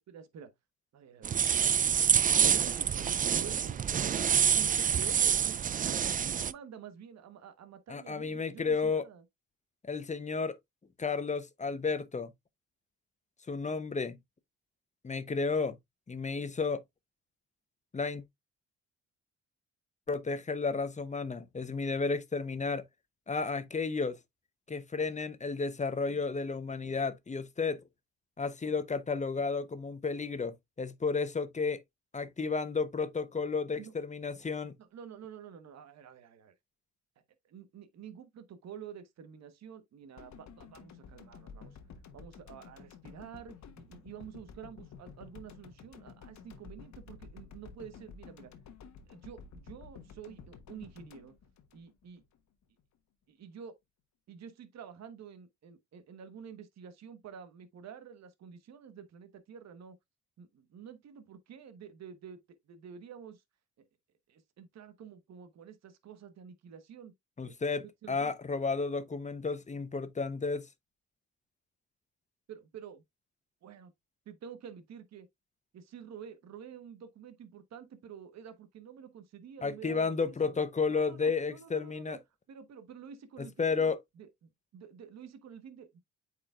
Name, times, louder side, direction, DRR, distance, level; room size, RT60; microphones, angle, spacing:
voice 1, 0.1-0.5 0.9-1.4 2.0-3.9 4.3-9.2 33.8-33.9 34.9-36.5 37.4-41.8 42.1-48.5 49.1-51.4 51.7-52.2 53.3-53.7 54.3-60.0 60.4-62.4 62.7-63.4 63.8-63.9 64.3-67.1 67.4-67.5 68.0-68.3 72.5-73.0 73.6-73.9 74.2-75.3 75.7-80.6 80.9-82.2 82.5-83.9 84.2-86.0, right 8 dB, 60° right, 1.2 m, -49 dB
sound 1, 1.2-6.5, right 8 dB, 30° right, 0.3 m, -27 dB
voice 2, 7.9-9.0 9.9-10.6 11.0-12.3 13.5-14.2 15.0-15.8 16.1-16.8 17.9-18.2 20.1-22.8 23.3-24.2 24.7-27.8 28.4-31.8 32.1-34.8 67.4-70.7 79.6-82.2 83.4-84.0, left 4 dB, 25° left, 0.8 m, -32 dB
sound 2, 40.2-52.4 52.6-52.8, left 6 dB, 65° left, 1.2 m, -52 dB
8.5 x 4.8 x 2.4 m
cardioid pair, 90°, 30 cm